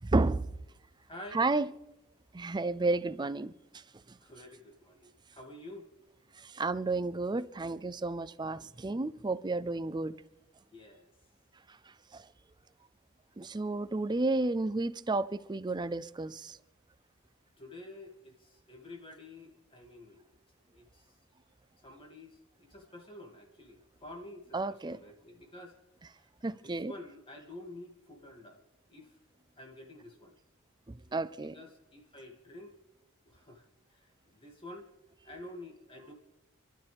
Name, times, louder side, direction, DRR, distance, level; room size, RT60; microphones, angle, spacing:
voice 1, 0.0-0.5 1.3-1.7 2.3-3.8 4.1-4.2 6.4-10.2 12.1-12.3 13.4-16.6 24.5-25.0 26.4-26.9 30.9-31.6, right 2 dB, 20° right, 0.4 m, -32 dB
voice 2, 1.1-1.5 4.2-5.9 10.7-11.1 17.6-20.3 20.7-21.1 21.8-25.8 26.2-28.6 28.9-29.2 29.6-30.3 31.5-32.7 33.3-33.6 33.9-34.9 35.2-36.1, left 1 dB, 25° left, 2.4 m, -49 dB
29.5 x 12.0 x 3.5 m
head